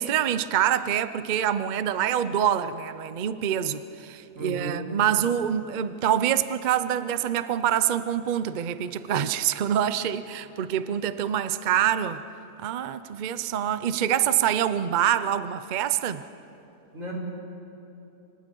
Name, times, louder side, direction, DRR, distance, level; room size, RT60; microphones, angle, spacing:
voice 1, 0.0-12.2 12.6-16.2, right 10 dB, 70° right, 0.4 m, -25 dB
voice 2, 4.3-4.9 16.9-17.1, right 2 dB, 50° right, 5.3 m, -34 dB
28.0 x 24.5 x 5.4 m
omnidirectional pair, 1.7 m